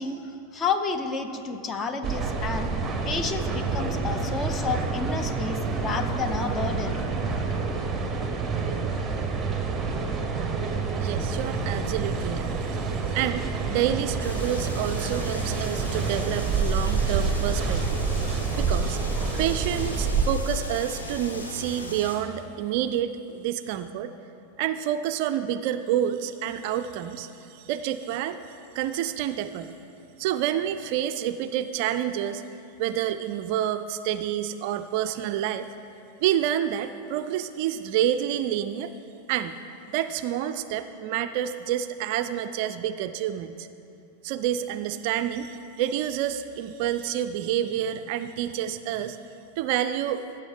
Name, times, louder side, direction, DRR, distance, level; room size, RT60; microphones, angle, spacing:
voice 1, 0.0-2.7 3.0-7.4, left 4 dB, 20° left, 8 dB, 0.6 m, -31 dB
sound 1, 2.0-20.3, right 4 dB, 15° right, 0.8 m, -28 dB
voice 2, 11.0-18.0 18.6-19.0 19.4-24.1 24.6-28.4 28.7-29.7 30.2-32.4 32.8-35.7 36.2-38.9 39.3-39.6 39.9-43.7 44.2-49.2 49.6-50.2, right 11 dB, 45° right, 10 dB, 0.3 m, -28 dB
sound 2, 14.2-22.2, left 1 dB, 75° left, 1.2 m, -38 dB
15.5 x 6.6 x 3.4 m, 2.8 s
figure-of-eight pair, 90°, 0 cm